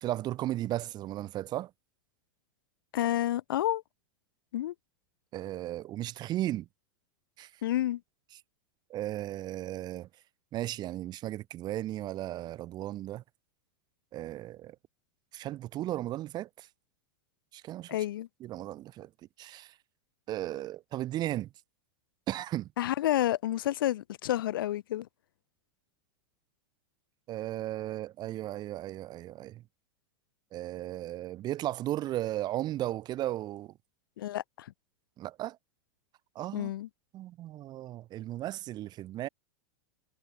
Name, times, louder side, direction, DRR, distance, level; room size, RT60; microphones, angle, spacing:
voice 1, 0.0-1.7 5.3-6.7 7.4-7.5 8.9-10.1 10.5-13.2 14.1-14.8 15.3-16.7 17.5-18.0 18.4-19.1 19.4-19.7 20.3-21.5 22.3-22.7 27.3-29.6 30.5-33.7 35.2-35.6 36.4-36.7 37.1-39.3, right 14 dB, 35° right, 2.2 m, -35 dB
voice 2, 2.9-3.8 4.5-4.7 7.6-8.0 17.9-18.3 22.8-25.1 34.2-34.7 36.5-36.9, left 13 dB, 75° left, 2.6 m, -30 dB
hypercardioid pair, 115°, 12 cm